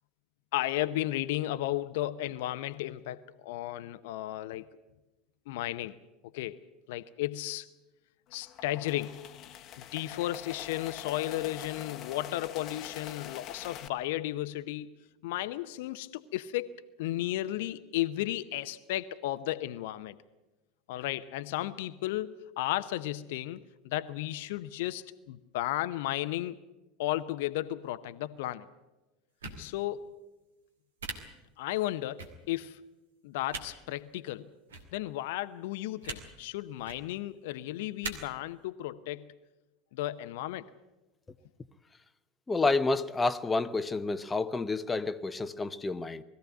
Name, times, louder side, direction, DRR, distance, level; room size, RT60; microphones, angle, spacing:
voice 1, 0.5-4.7 5.5-6.0 6.3-6.6 6.9-7.7 8.3-9.2 9.8-14.9 15.2-20.2 20.9-26.6 27.0-28.7 29.6-30.2 31.6-32.8 33.2-34.5 34.9-39.3 39.9-40.6, left 15 dB, 60° left, 0.7 m, -34 dB
sound 1, 8.3-13.9, left 10 dB, 40° left, 1.1 m, -44 dB
sound 2, 29.4-29.6 31.0-31.1 32.2-32.3 33.5-33.6 34.7-34.8 36.0-36.2 36.8-37.0 38.0-38.1, right 4 dB, 70° right, 2.4 m, -38 dB
voice 2, 42.5-46.2, left 3 dB, 15° left, 0.8 m, -29 dB
21.0 x 15.0 x 9.3 m
figure-of-eight pair, 75°, 0 cm